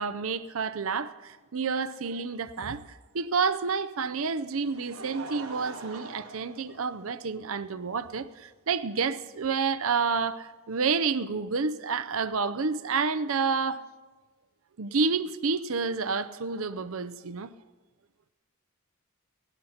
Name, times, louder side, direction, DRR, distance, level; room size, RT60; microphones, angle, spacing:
voice 1, 0.0-2.8 3.1-13.9 14.8-17.5, right 5 dB, 65° right, 0.6 m, -29 dB
Laughter, 4.2-7.4 8.3-8.4 9.8-9.9, right 3 dB, 80° right, 3.4 m, -43 dB
17.5 x 12.0 x 5.7 m
head